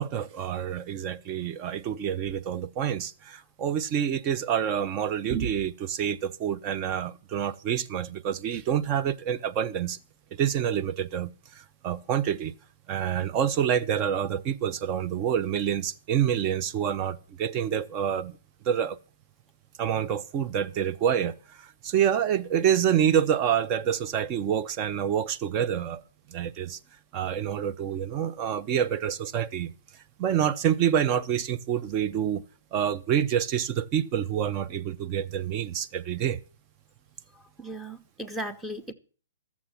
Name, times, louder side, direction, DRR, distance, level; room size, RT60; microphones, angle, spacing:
voice 1, 0.0-10.0 10.3-12.5 12.9-18.4 18.6-19.0 19.8-26.0 26.3-26.8 27.1-29.7 30.2-32.4 32.7-36.4, right 9 dB, 30° right, 0.7 m, -27 dB
voice 2, 37.6-38.9, right 1 dB, ahead, 1.0 m, -36 dB
13.5 x 7.2 x 7.6 m
hypercardioid pair, 135°, 0 cm